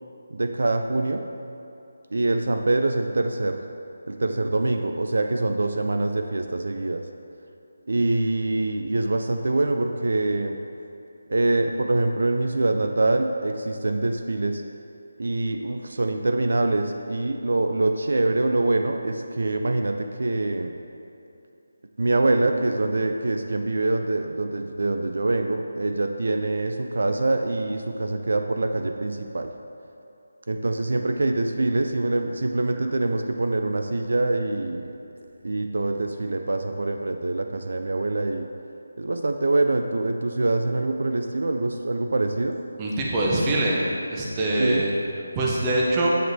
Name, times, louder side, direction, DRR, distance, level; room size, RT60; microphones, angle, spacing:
voice 1, 0.3-1.2 2.1-3.6 4.1-7.0 7.9-10.6 11.3-14.6 15.2-20.7 22.0-29.5 30.5-34.9 35.4-38.5 39.0-42.6 44.6-44.8, right 2 dB, 70° right, 5 dB, 0.3 m, -24 dB
voice 2, 42.8-43.8 44.1-44.9 45.4-46.1, right 2 dB, 20° right, -4 dB, 0.7 m, -23 dB
7.8 x 4.6 x 2.7 m, 2.8 s
figure-of-eight pair, 165°, 0 cm